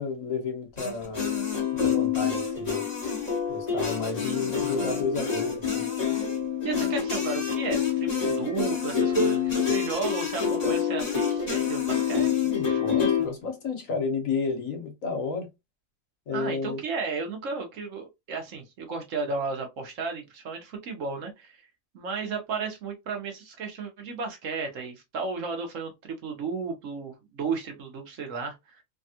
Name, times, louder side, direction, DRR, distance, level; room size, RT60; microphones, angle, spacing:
voice 1, 0.0-1.3 1.8-2.8 3.5-5.9 12.4-15.5 16.3-16.8, left 4 dB, 75° left, 1.4 m, -31 dB
sound 1, 0.8-13.2, left 7 dB, 30° left, 1.3 m, -27 dB
voice 2, 6.6-13.0 16.3-21.6 21.9-28.8, right 4 dB, 70° right, 1.2 m, -34 dB
3.3 x 2.3 x 2.7 m
omnidirectional pair, 1.4 m